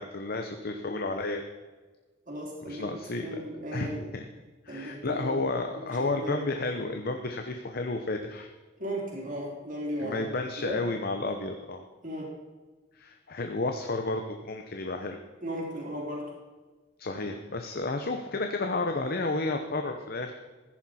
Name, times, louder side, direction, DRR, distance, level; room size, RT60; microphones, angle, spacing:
voice 1, 0.0-1.4 2.7-3.4 3.7-4.2 4.6-8.5 10.0-11.8 12.9-15.2 17.0-20.3, left 2 dB, 50° left, 5 dB, 0.8 m, -32 dB
voice 2, 2.3-2.8 3.2-4.1 4.7-5.5 5.8-5.9 6.1-6.4 8.8-10.3 10.6-10.8 12.0-12.3 15.4-16.2, right 1 dB, 45° right, -2 dB, 3.5 m, -35 dB
14.5 x 10.0 x 4.3 m, 1.3 s
head